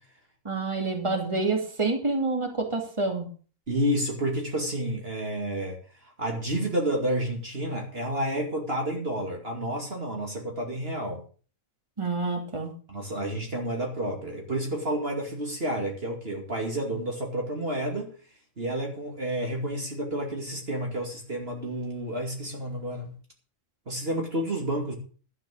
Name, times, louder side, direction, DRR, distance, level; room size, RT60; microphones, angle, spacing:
voice 1, 0.4-3.3 12.0-12.7, right 3 dB, 20° right, 3 dB, 2.6 m, -28 dB
voice 2, 3.7-11.2 12.9-18.1 18.6-23.1 23.9-25.0, right 1 dB, 45° right, 1 dB, 2.7 m, -30 dB
12.0 x 8.7 x 6.4 m, 0.39 s
omnidirectional pair, 1.4 m